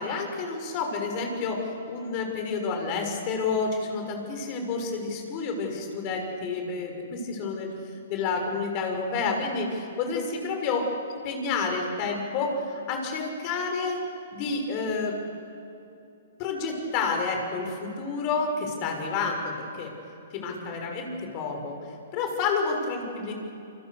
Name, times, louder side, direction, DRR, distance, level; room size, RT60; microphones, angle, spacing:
voice 1, 0.0-1.6 1.9-7.7 8.1-14.0 14.3-15.2 16.4-19.9 20.3-21.8 22.1-23.3, left 4 dB, 40° left, 3 dB, 6.3 m, -29 dB
28.0 x 26.0 x 6.8 m, 2.8 s
hypercardioid pair, 125°, 0 cm